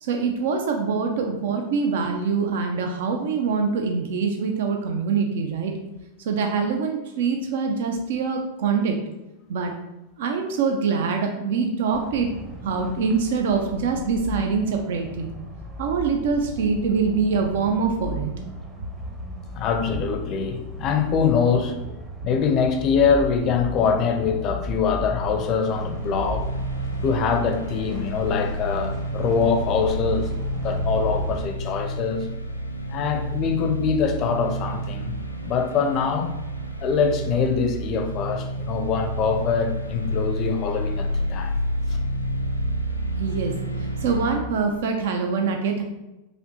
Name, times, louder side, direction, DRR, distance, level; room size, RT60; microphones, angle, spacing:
voice 1, 0.0-5.7 6.2-9.0 9.5-9.7 10.2-12.3 12.6-15.3 15.8-18.3 43.2-43.5 43.8-45.8, right 5 dB, 55° right, 3 dB, 0.5 m, -24 dB
sound 1, 11.9-31.4, equal, 20° right, 0.8 m, -36 dB
voice 2, 19.5-22.0 22.2-26.5 27.0-30.3 30.6-32.3 32.9-35.2 35.4-36.3 36.8-41.6, left 6 dB, 35° left, 6 dB, 0.5 m, -24 dB
sound 2, 24.9-44.4, right 1 dB, 85° left, 0.4 m, -29 dB
5.0 x 2.6 x 2.9 m, 0.97 s
figure-of-eight pair, 90°, 0 cm